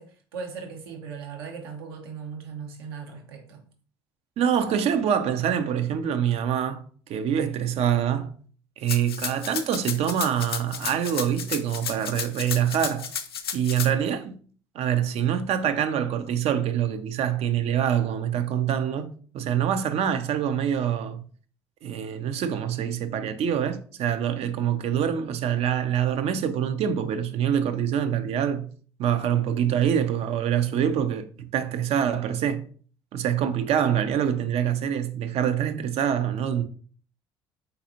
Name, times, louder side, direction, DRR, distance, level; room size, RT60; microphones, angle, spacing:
voice 1, 0.0-3.7, right 5 dB, 80° right, 0.9 m, -38 dB
voice 2, 4.4-6.8 7.1-8.4 8.8-13.1 13.5-14.4 14.7-21.2 21.8-28.7 29.0-32.7 33.1-36.6, right 9 dB, 55° right, 0.6 m, -25 dB
Rattle (instrument), 8.9-13.9, left 7 dB, 90° left, 0.4 m, -32 dB
4.1 x 4.0 x 2.8 m
hypercardioid pair, 55°, 12 cm